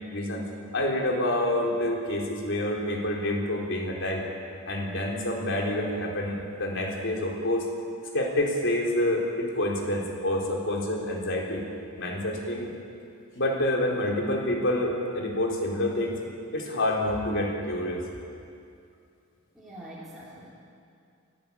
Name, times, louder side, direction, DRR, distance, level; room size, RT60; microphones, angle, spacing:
voice 1, 0.1-0.4 0.7-4.2 4.7-7.7 8.1-11.6 12.0-12.7 13.4-16.2 16.5-18.1, left 1 dB, 60° left, -1 dB, 4.1 m, -27 dB
voice 2, 19.6-20.5, right 1 dB, ahead, -10 dB, 3.3 m, -44 dB
24.5 x 16.0 x 8.6 m, 2.4 s
head